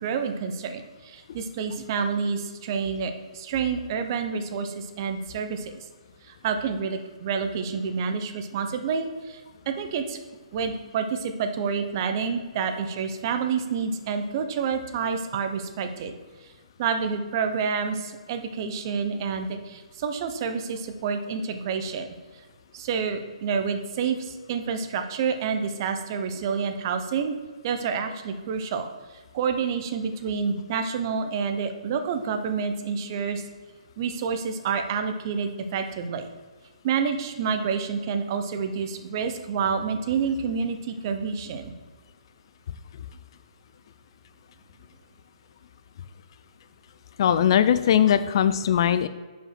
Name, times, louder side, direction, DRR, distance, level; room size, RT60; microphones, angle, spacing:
voice 1, 0.0-5.8 6.3-9.4 9.7-10.2 10.5-16.1 16.8-22.1 22.7-27.3 27.6-28.9 29.3-33.4 34.0-36.2 36.8-41.7, right 6 dB, 35° right, 7 dB, 0.7 m, -28 dB
voice 2, 47.2-49.1, left 9 dB, 45° left, 12 dB, 0.3 m, -20 dB
5.1 x 5.0 x 5.9 m, 1.4 s
hypercardioid pair, 155°, 4 cm